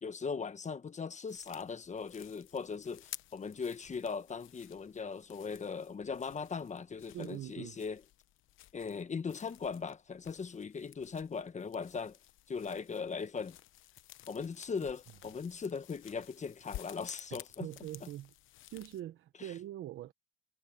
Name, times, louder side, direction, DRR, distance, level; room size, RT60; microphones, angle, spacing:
voice 1, 0.0-8.0 8.7-12.2 12.5-13.6 14.3-17.7 18.0-18.1 19.4-19.5, left 5 dB, 35° left, 1.3 m, -39 dB
sound 1, 1.3-19.0, left 14 dB, 85° left, 1.0 m, -54 dB
voice 2, 7.1-7.8 17.3-18.3 18.7-20.1, right 13 dB, 80° right, 1.1 m, -43 dB
cardioid pair, 90°, 20 cm